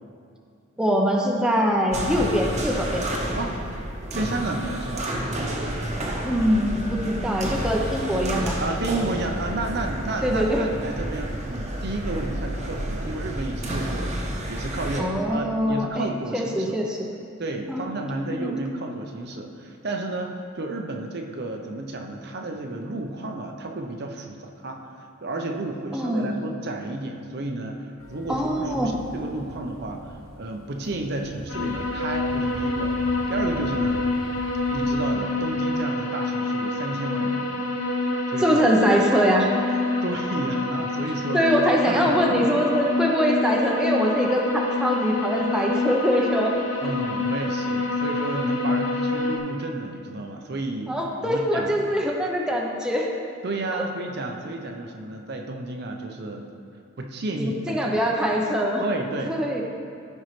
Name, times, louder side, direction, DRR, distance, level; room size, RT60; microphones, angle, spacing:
voice 1, 0.8-3.1 6.2-8.6 10.2-10.7 15.0-17.1 17.7-17.8 18.1-18.6 25.9-26.4 28.3-28.9 38.4-39.8 41.3-46.6 50.9-53.1 53.7-53.8 57.4-58.8 59.3-59.6, equal, 5° right, -1 dB, 0.7 m, -23 dB
sound 1, 1.9-15.0, right 1 dB, 35° right, 1.0 m, -30 dB
voice 2, 4.1-5.1 8.6-16.8 17.4-34.1 34.7-37.6 38.3-38.6 40.0-41.5 41.9-42.5 46.8-51.0 51.2-51.7 53.4-56.5 57.0-58.1 58.8-59.4, right 2 dB, 55° right, 3 dB, 0.7 m, -32 dB
sound 2, 28.0-35.1, equal, 90° left, 1.4 m, -41 dB
sound 3, 31.5-49.4, left 2 dB, 70° left, 1.0 m, -27 dB
14.0 x 5.4 x 3.2 m, 2.4 s
head